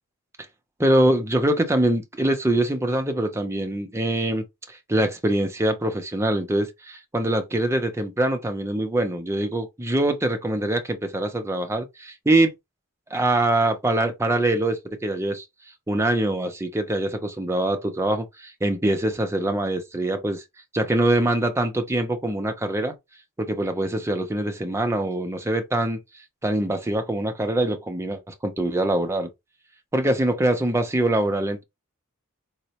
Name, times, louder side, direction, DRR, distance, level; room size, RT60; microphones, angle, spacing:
voice 1, 0.8-12.5 13.1-15.4 15.9-20.4 20.7-22.9 23.4-26.0 26.4-29.3 29.9-31.6, right 1 dB, 10° right, 0.5 m, -24 dB
4.0 x 2.1 x 2.8 m
head